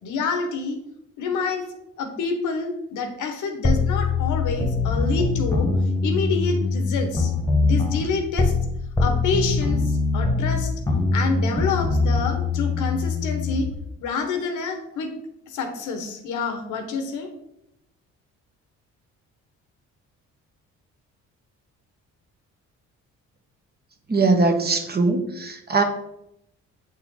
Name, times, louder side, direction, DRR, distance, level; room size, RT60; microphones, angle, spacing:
voice 1, 0.0-0.8 1.2-1.6 2.0-5.7 6.0-7.3 7.6-8.5 9.0-10.7 11.1-13.7 14.0-15.1 15.5-17.3, left 4 dB, 85° left, 5 dB, 1.3 m, -27 dB
sound 1, 3.6-8.7 9.0-13.7, left 3 dB, 10° left, 1.4 m, -23 dB
voice 2, 24.1-25.8, right 3 dB, 30° right, 5 dB, 1.2 m, -21 dB
8.0 x 4.5 x 3.8 m, 0.80 s
cardioid pair, 90°, 30 cm